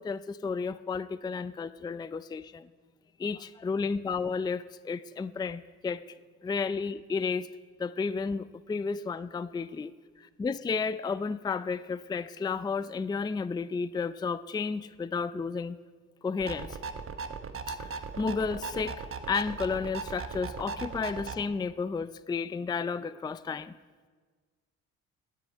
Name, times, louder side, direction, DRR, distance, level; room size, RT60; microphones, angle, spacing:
voice 1, 0.0-2.7 3.2-6.0 6.4-7.5 7.8-9.9 10.2-15.8 16.2-16.8 17.7-23.7, left 5 dB, 15° left, 14 dB, 0.4 m, -32 dB
sound 1, 16.4-21.4, right 5 dB, 45° right, 1.0 m, -38 dB
16.0 x 6.5 x 9.5 m, 1.5 s
cardioid pair, 90°, 30 cm